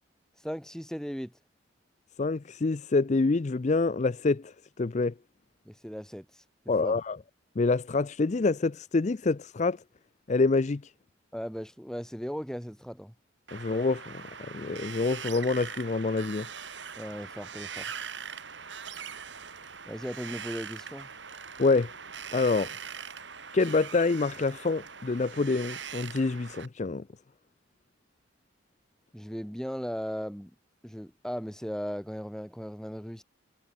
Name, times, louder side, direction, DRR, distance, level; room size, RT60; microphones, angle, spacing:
voice 1, 0.4-1.3 5.7-6.3 6.8-7.0 11.3-13.1 17.0-17.9 19.9-21.1 29.1-30.5 30.8-33.2, equal, 5° left, 3.6 m, -37 dB
voice 2, 2.2-5.1 6.7-7.2 7.6-9.8 10.3-10.8 13.5-14.2 14.5-16.5 21.6-21.9 22.3-22.7 23.5-27.0, left 3 dB, 35° left, 0.5 m, -26 dB
Wind, 13.5-26.7, right 7 dB, 65° right, 3.9 m, -42 dB
head